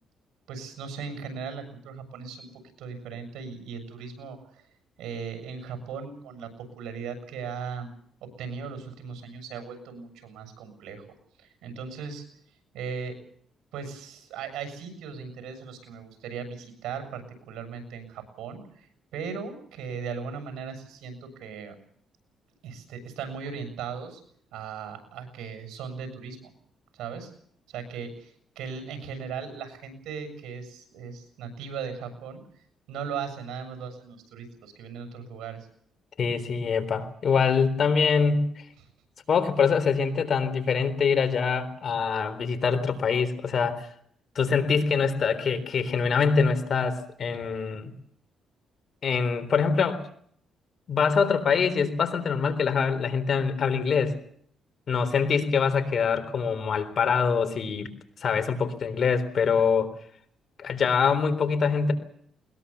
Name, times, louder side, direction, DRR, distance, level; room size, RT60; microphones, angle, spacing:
voice 1, 0.5-4.6 5.0-6.5 6.8-7.9 8.2-11.1 11.4-12.2 12.7-13.2 13.7-18.9 19.1-21.7 22.6-24.2 24.5-26.5 26.9-27.3 27.7-32.4 32.9-35.7, right 6 dB, 85° right, 8 dB, 7.2 m, -38 dB
voice 2, 36.2-38.5 39.3-43.9 44.4-47.9 49.0-50.0 50.9-54.2 54.9-57.9 58.2-59.9 60.6-61.9, left 5 dB, 55° left, 11 dB, 3.8 m, -24 dB
21.5 x 21.5 x 7.1 m, 0.63 s
cardioid pair, 90°, 0 cm